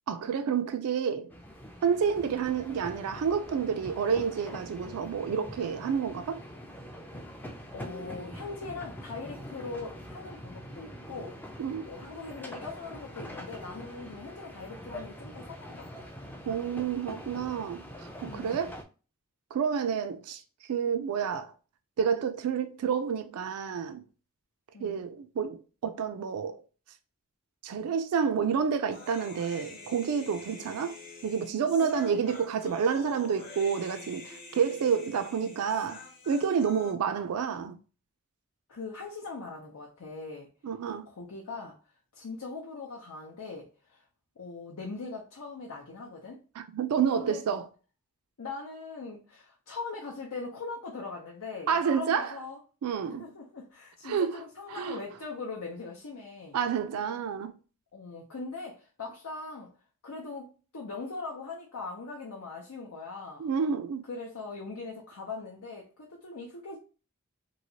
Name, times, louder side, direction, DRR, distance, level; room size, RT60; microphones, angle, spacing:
voice 1, 0.1-1.3 1.8-6.4 11.6-11.9 16.5-17.8 18.2-18.8 19.5-20.4 20.7-21.5 22.0-24.0 24.8-26.6 27.6-31.0 31.2-37.8 40.6-41.1 46.6-47.7 51.7-52.4 52.8-53.3 54.0-54.4 54.7-55.0 56.5-57.5 63.4-64.0, right 6 dB, 80° right, 0.4 m, -29 dB
sound 1, 1.3-18.8, equal, 10° left, 0.3 m, -44 dB
voice 2, 7.7-11.4 11.9-16.1 18.3-18.7 24.7-25.0 31.8-32.3 35.4-35.5 38.7-40.5 41.1-41.8 42.1-44.0 44.4-46.4 47.1-47.4 48.4-52.6 53.0-56.6 57.9-59.7 60.0-63.5 64.1-66.8, left 4 dB, 90° left, 0.7 m, -41 dB
Human voice, 28.9-36.9, left 3 dB, 35° left, 1.0 m, -47 dB
3.1 x 2.8 x 2.7 m
head